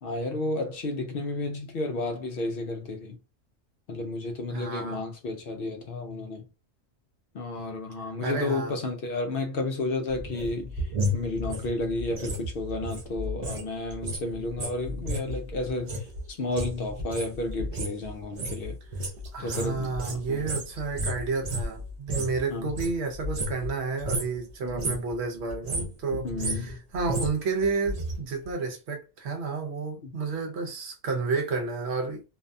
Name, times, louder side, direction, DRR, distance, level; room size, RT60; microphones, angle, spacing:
voice 1, 0.0-3.2 3.9-6.4 7.3-18.8 19.4-20.6 22.5-22.7 24.6-25.0 26.1-26.8 30.0-30.1, left 2 dB, 60° left, 0.6 m, -32 dB
voice 2, 4.5-5.0 8.2-8.7 19.3-32.2, right 4 dB, 60° right, 0.9 m, -31 dB
sound 1, 10.1-13.7 13.9-22.4 22.7-23.8 24.0-24.4 24.7-25.1 25.5-28.1 28.4-28.5, equal, 45° right, 0.5 m, -32 dB
2.6 x 2.2 x 2.5 m
omnidirectional pair, 1.3 m